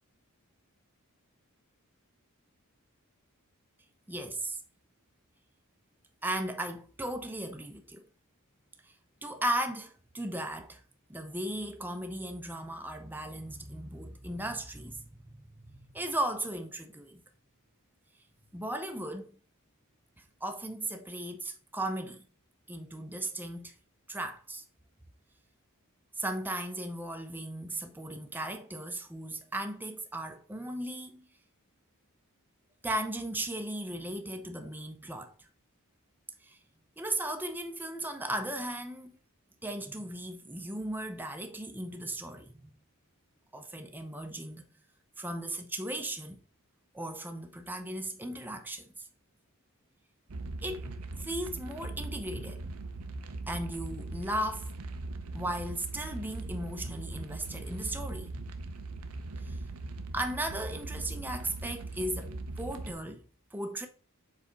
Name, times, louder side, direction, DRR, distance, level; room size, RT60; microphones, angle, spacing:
voice 1, 4.1-4.6 6.2-8.1 9.2-10.8 11.1-17.2 18.5-19.4 20.4-22.2 22.7-23.7 24.1-24.6 26.2-31.2 32.8-35.3 36.4-36.6 37.0-39.1 39.6-42.7 43.5-44.6 45.2-46.4 46.9-49.1 50.6-52.6 53.5-54.7 55.3-58.3 59.4-59.6 60.1-63.2 63.5-63.9, right 1 dB, 10° right, 0.6 m, -36 dB
sound 1, 50.3-62.9, right 2 dB, 80° right, 0.8 m, -40 dB
5.0 x 4.2 x 5.0 m
head